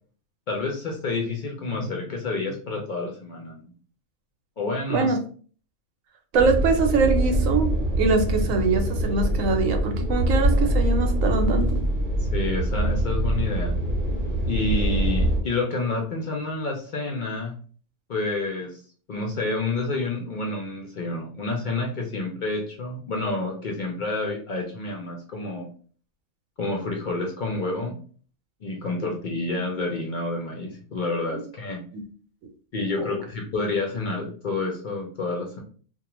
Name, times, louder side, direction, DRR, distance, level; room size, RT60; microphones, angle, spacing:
voice 1, 0.5-3.7 4.6-5.2 12.2-13.7 14.5-17.6 18.1-18.8 19.1-25.7 26.6-28.0 28.6-31.8 32.7-35.6, left 3 dB, 70° left, 0 dB, 0.4 m, -29 dB
sound 1, 6.3-15.4, right 1 dB, 50° right, 0.7 m, -24 dB
voice 2, 6.3-11.8 29.0-29.1 31.9-32.0 33.0-33.2, right 4 dB, 80° right, 5 dB, 1.0 m, -23 dB
2.4 x 2.2 x 2.9 m, 0.43 s
omnidirectional pair, 1.4 m